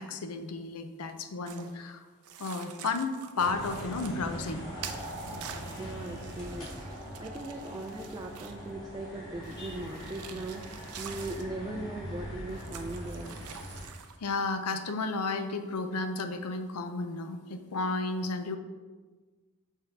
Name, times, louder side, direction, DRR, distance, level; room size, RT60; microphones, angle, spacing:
voice 1, 0.0-2.0 2.4-4.7 14.2-18.6, left 3 dB, 85° left, 8 dB, 0.6 m, -33 dB
sound 1, 1.5-1.7 2.2-4.2 4.8-8.7 9.4-11.5 12.5-14.2, right 8 dB, 90° right, 0.5 m, -47 dB
sound 2, 3.4-13.8, equal, 20° left, 2.0 m, -42 dB
voice 2, 5.8-13.4, right 2 dB, 20° right, 1 dB, 0.3 m, -39 dB
5.5 x 3.6 x 5.9 m, 1.4 s
head